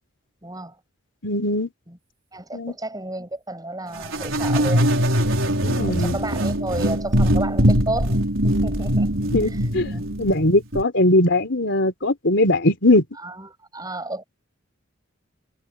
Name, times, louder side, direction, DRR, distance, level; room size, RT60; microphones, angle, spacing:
voice 1, 0.4-0.8 1.9-2.0 2.3-4.9 5.9-9.2 9.9-10.1 13.2-14.2, right 2 dB, 20° right, 6.8 m, -32 dB
voice 2, 1.2-1.7 2.5-2.7 5.6-6.2 9.3-13.0, left 1 dB, 55° left, 3.6 m, -20 dB
sound 1, 4.0-10.8, equal, 65° right, 5.0 m, -21 dB
head